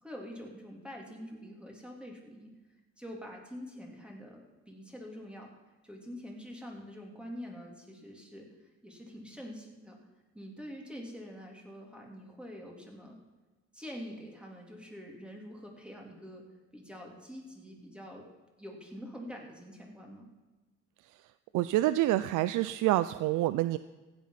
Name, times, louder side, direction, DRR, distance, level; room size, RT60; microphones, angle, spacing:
voice 1, 0.0-2.5 3.0-5.5 5.8-10.0 10.3-13.2 13.7-18.3 18.6-20.3, equal, 5° right, 0 dB, 3.3 m, -46 dB
voice 2, 21.5-23.8, right 15 dB, 85° right, 14 dB, 0.5 m, -27 dB
15.5 x 8.6 x 5.9 m, 1.2 s
cardioid pair, 90°, 30 cm